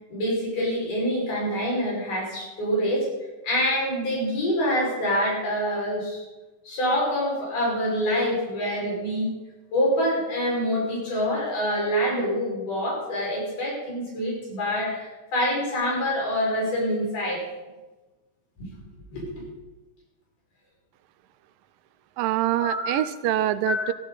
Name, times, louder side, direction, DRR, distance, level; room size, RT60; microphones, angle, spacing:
voice 1, 0.1-3.1 3.4-6.2 6.6-9.3 9.7-17.4 19.1-19.4 22.6-23.0 23.6-23.9, equal, 65° left, -4 dB, 7.1 m, -26 dB
voice 2, 22.2-23.9, right 13 dB, 90° right, 13 dB, 2.3 m, -25 dB
16.5 x 15.0 x 4.1 m, 1.1 s
omnidirectional pair, 4.0 m